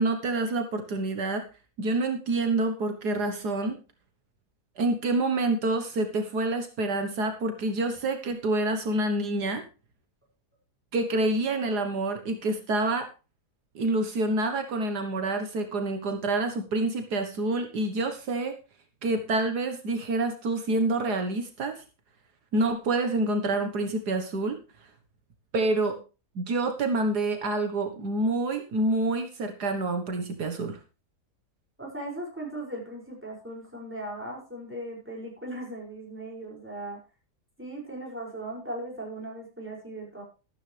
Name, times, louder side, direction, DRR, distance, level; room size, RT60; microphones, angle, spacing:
voice 1, 0.0-1.4 1.8-3.8 4.8-9.6 10.9-13.1 13.8-18.6 19.0-21.8 22.5-24.6 25.5-26.0 26.4-30.8, right 2 dB, 75° right, 6 dB, 1.9 m, -27 dB
voice 2, 31.8-37.0 37.6-40.2, right 1 dB, 5° right, -1 dB, 6.4 m, -38 dB
13.5 x 13.0 x 3.4 m, 0.32 s
omnidirectional pair, 1.7 m